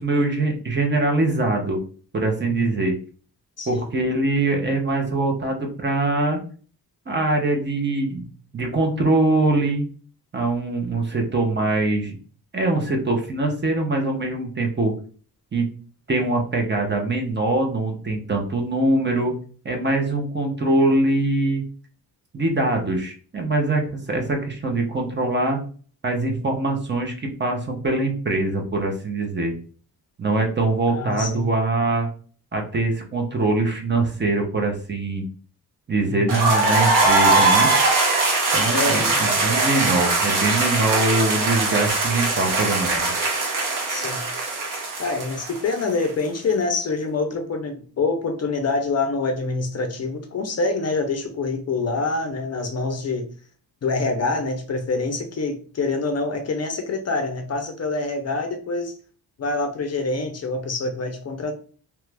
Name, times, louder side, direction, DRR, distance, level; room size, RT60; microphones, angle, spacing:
voice 1, 0.0-1.8 2.1-3.0 3.7-6.4 7.1-8.3 8.5-9.9 10.3-12.2 12.5-14.9 15.5-15.7 16.1-19.4 19.6-21.6 22.3-25.6 26.0-29.5 30.2-32.1 32.5-35.3 35.9-37.7 38.5-43.3, right 2 dB, 30° right, 2 dB, 0.6 m, -23 dB
voice 2, 30.9-31.5 36.0-36.4 38.7-39.2 43.9-44.2 45.0-53.3 53.8-58.9 59.4-61.5, left 3 dB, 40° left, 5 dB, 0.5 m, -26 dB
sound 1, 36.3-46.1, right 3 dB, 55° right, 1.0 m, -21 dB
3.0 x 2.3 x 3.3 m, 0.42 s
wide cardioid pair, 165°, 39 cm